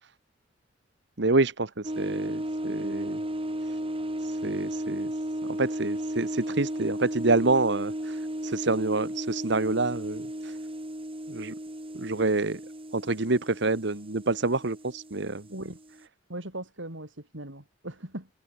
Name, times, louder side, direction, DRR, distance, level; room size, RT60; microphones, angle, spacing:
voice 1, 1.2-3.2 3.7-3.8 4.2-5.2 5.5-10.6 11.3-11.5 11.9-12.6 12.9-15.5, right 3 dB, 65° right, 1.4 m, -27 dB
sound 1, 1.8-16.0, right 1 dB, 30° right, 4.7 m, -34 dB
voice 2, 15.5-15.8 16.3-18.3, right 1 dB, 85° right, 5.9 m, -39 dB
head